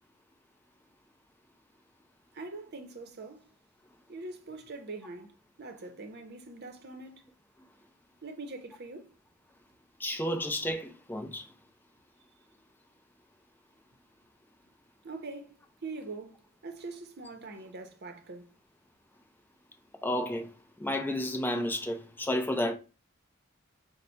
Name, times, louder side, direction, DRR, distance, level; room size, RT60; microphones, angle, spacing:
voice 1, 2.3-3.4 4.1-7.2 8.2-9.1 15.0-15.5 15.8-16.3 16.6-18.5, right 3 dB, 50° right, 0.7 m, -43 dB
voice 2, 10.0-11.5 20.0-20.5 20.8-22.7, left 1 dB, 10° left, 0.5 m, -31 dB
4.0 x 2.1 x 4.3 m
head